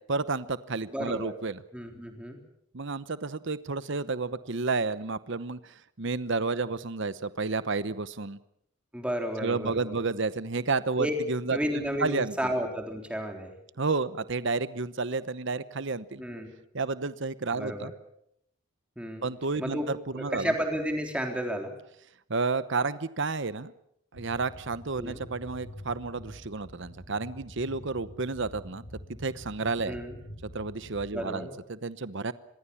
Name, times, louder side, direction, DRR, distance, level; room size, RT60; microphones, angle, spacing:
voice 1, 0.1-1.6 2.7-8.4 9.4-12.3 13.8-16.2 16.7-17.9 19.2-20.5 22.3-23.7 24.1-28.8 29.2-30.0 30.4-32.3, right 3 dB, 55° right, 15 dB, 0.9 m, -31 dB
voice 2, 0.9-1.3 1.7-2.4 8.9-10.0 11.0-11.1 11.5-13.5 16.2-16.5 17.6-17.9 19.0-19.3 19.6-21.7 25.0-25.2 29.9-30.2 31.1-31.5, equal, 5° right, 3 dB, 3.7 m, -32 dB
sound 1, 24.1-31.2, equal, 70° left, 6.6 m, -46 dB
26.0 x 21.5 x 7.2 m, 0.74 s
head